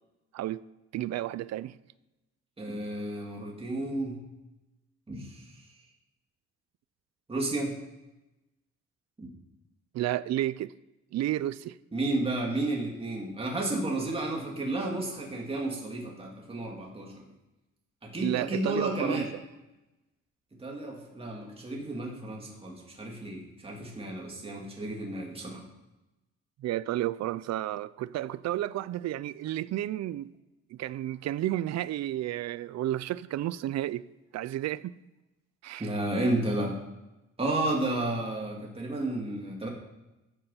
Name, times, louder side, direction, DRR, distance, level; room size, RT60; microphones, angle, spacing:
voice 1, 0.9-1.8 9.9-10.7 11.1-11.8 18.2-19.2 26.6-30.3 30.7-34.1 34.3-34.9 35.6-35.9, right 13 dB, 65° right, 0.5 m, -31 dB
voice 2, 2.6-4.2 5.1-5.6 7.3-7.7 9.2-9.3 11.9-17.2 18.0-19.3 20.6-25.6 35.8-36.8 37.4-39.7, right 2 dB, 20° right, 2.4 m, -32 dB
14.0 x 6.8 x 5.7 m
cardioid pair, 130°, 30 cm